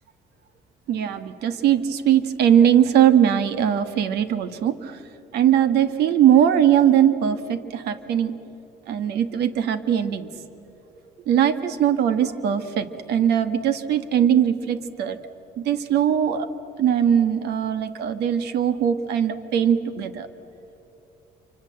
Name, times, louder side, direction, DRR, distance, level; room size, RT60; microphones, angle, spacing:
voice 1, 0.9-5.0 5.3-8.3 8.9-10.4 11.3-15.2 15.6-16.5 16.8-20.3, right 9 dB, 75° right, 11 dB, 1.6 m, -20 dB
27.0 x 25.5 x 7.7 m, 3.0 s
cardioid pair, 110°, 17 cm